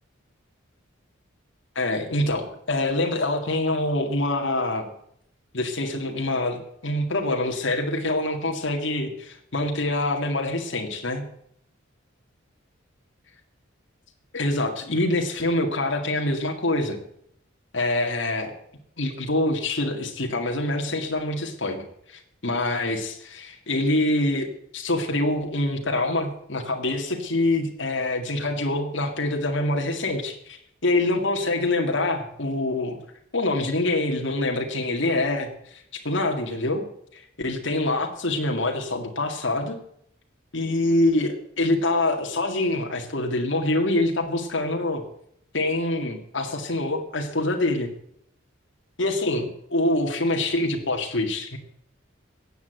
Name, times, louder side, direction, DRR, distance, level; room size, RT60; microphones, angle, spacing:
voice 1, 1.8-4.9 5.5-11.2 14.3-17.0 17.7-18.5 19.0-21.8 22.1-24.5 24.7-33.0 33.3-36.8 37.1-39.8 40.5-45.0 45.5-47.9 49.0-51.6, left 2 dB, 65° left, 2 dB, 2.0 m, -25 dB
15.0 x 8.5 x 8.0 m, 0.70 s
head